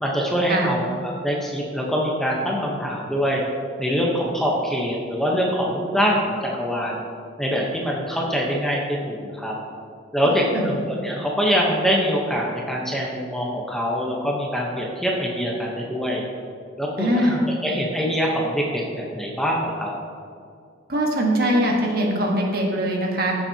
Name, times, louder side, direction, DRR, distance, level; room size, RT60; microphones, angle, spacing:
voice 1, 0.0-3.4 3.8-7.0 7.4-9.5 10.1-16.2 16.8-17.4 17.6-19.9, equal, ahead, -3 dB, 0.9 m, -24 dB
voice 2, 10.2-10.7 17.0-17.4 20.9-23.4, equal, 50° right, 0 dB, 1.5 m, -22 dB
14.5 x 7.3 x 2.9 m, 2.3 s
head